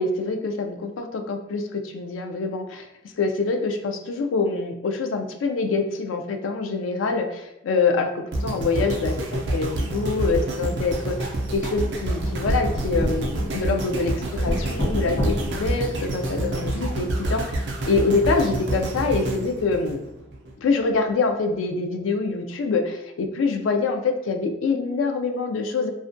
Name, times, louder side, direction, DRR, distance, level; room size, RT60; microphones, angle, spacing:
voice 1, 0.0-2.9 3.2-20.0 20.6-25.9, left 4 dB, 90° left, 5 dB, 0.3 m, -25 dB
sound 1, 8.3-20.5 21.1-21.2, right 1 dB, 65° right, 0.4 m, -28 dB
sound 2, 10.2-10.9 11.4-12.1 12.5-14.1 14.5-15.8 16.5-17.4, equal, 35° left, 0.6 m, -30 dB
2.4 x 2.1 x 2.5 m, 0.91 s
head